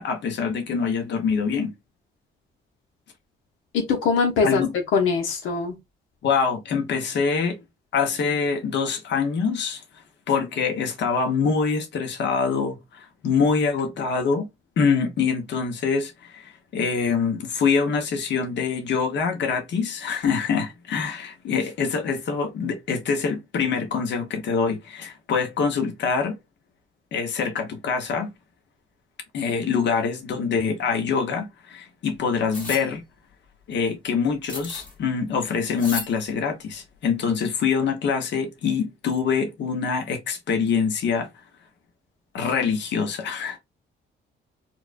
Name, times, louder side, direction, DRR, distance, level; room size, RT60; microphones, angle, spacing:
voice 1, 0.0-1.7 4.4-4.7 6.2-7.6 7.9-9.8 10.3-14.5 14.8-26.4 27.1-28.3 29.3-33.0 33.7-41.3 42.3-43.6, left 5 dB, 65° left, 1.1 m, -25 dB
voice 2, 3.7-4.6 4.9-5.7, left 5 dB, 85° left, 1.0 m, -22 dB
sound 1, 32.5-32.8 34.5-34.9 35.8-36.1, left 2 dB, 40° left, 1.7 m, -33 dB
4.5 x 2.4 x 2.6 m
cardioid pair, 90°, 20 cm